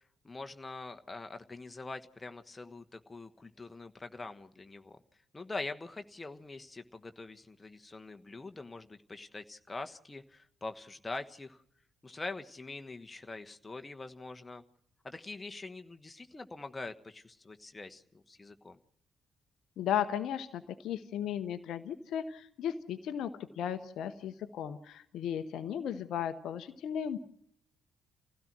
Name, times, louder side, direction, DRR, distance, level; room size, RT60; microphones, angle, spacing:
voice 1, 0.2-5.0 5.3-11.6 12.0-14.6 15.0-18.8, left 3 dB, 25° left, 7 dB, 1.3 m, -44 dB
voice 2, 19.8-27.2, left 9 dB, 60° left, 11 dB, 0.9 m, -35 dB
27.5 x 16.5 x 6.1 m, 0.65 s
figure-of-eight pair, 40°, 0 cm